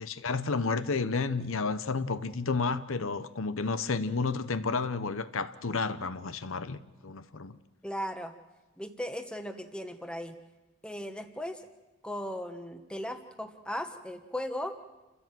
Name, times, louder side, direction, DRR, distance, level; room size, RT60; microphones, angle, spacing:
voice 1, 0.0-7.6, left 4 dB, 70° left, 0.9 m, -31 dB
voice 2, 7.8-8.3 8.8-10.4 10.8-11.7 12.0-14.8, equal, 5° left, 1.3 m, -37 dB
29.0 x 15.0 x 7.7 m
head